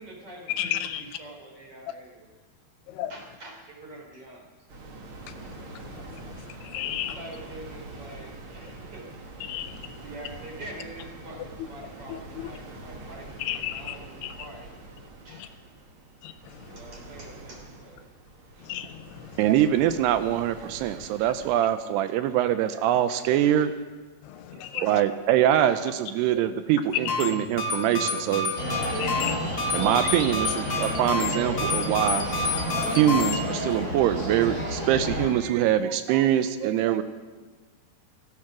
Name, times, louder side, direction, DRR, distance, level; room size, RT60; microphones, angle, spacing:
voice 1, 0.0-2.3 3.1-4.5 6.3-6.5 6.7-9.4 9.7-14.8 15.2-15.5 16.6-18.0 18.6-18.8, right 1 dB, 35° right, 0 dB, 3.8 m, -45 dB
voice 2, 0.6-1.0 2.9-3.1 5.9-6.2 6.6-7.2 9.4-9.8 12.1-12.2 13.4-14.0 14.2-14.3 15.4-15.5 16.2-16.3 18.7-19.2 24.3-24.9 28.9-29.9, left 12 dB, 80° left, 11 dB, 2.6 m, -33 dB
sound 1, 4.7-21.5, right 2 dB, 60° right, 1.4 m, -44 dB
voice 3, 19.4-23.8 24.8-28.5 29.0-29.2 29.7-32.3 32.9-37.0, right 11 dB, 80° right, 11 dB, 2.6 m, -24 dB
sound 2, 26.9-33.4, left 3 dB, 45° left, 2.0 m, -29 dB
sound 3, 28.6-35.3, equal, 20° right, 3.9 m, -31 dB
16.5 x 14.0 x 6.0 m, 1.4 s
omnidirectional pair, 4.9 m